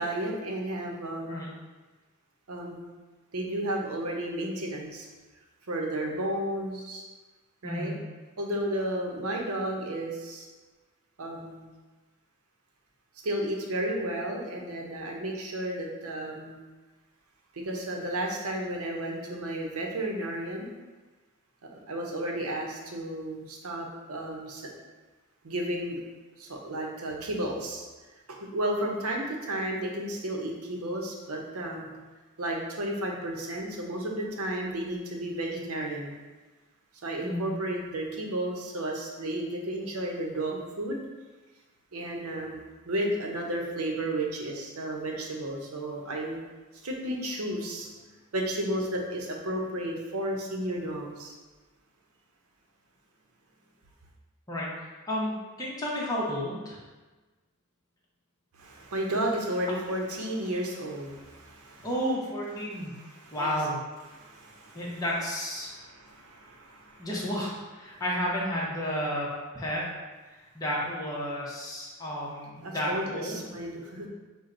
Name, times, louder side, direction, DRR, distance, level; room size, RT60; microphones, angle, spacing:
voice 1, 0.0-1.4 2.5-2.8 3.3-5.1 5.7-7.0 7.6-7.9 8.4-10.5 11.2-11.6 13.2-16.6 17.5-20.7 21.7-24.7 25.4-26.0 26.4-27.8 28.3-31.8 32.4-36.2 37.0-41.0 41.9-46.4 46.8-47.9 48.3-51.3 58.6-61.9 62.7-63.6 64.1-65.0 65.6-67.1 67.9-68.0 72.6-74.1, right 1 dB, 85° right, 0 dB, 0.8 m, -33 dB
voice 2, 7.6-8.0 37.2-37.5 54.5-54.7 55.1-56.8 61.8-62.9 63.3-63.8 64.7-65.7 67.0-69.9 70.5-73.5, equal, 15° left, -6 dB, 0.8 m, -32 dB
5.9 x 2.2 x 3.8 m, 1.2 s
head